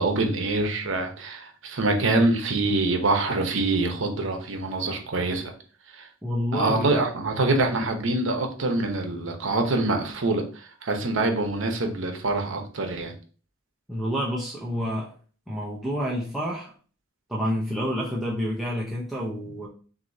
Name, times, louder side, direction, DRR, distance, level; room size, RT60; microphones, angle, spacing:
voice 1, 0.0-5.5 5.9-6.1 6.5-13.1, right 2 dB, 70° right, 4 dB, 0.9 m, -25 dB
voice 2, 6.2-6.9 7.7-7.8 13.9-15.1 15.5-16.7 17.3-19.7, equal, ahead, -6 dB, 0.7 m, -28 dB
6.1 x 2.7 x 2.7 m, 0.40 s
head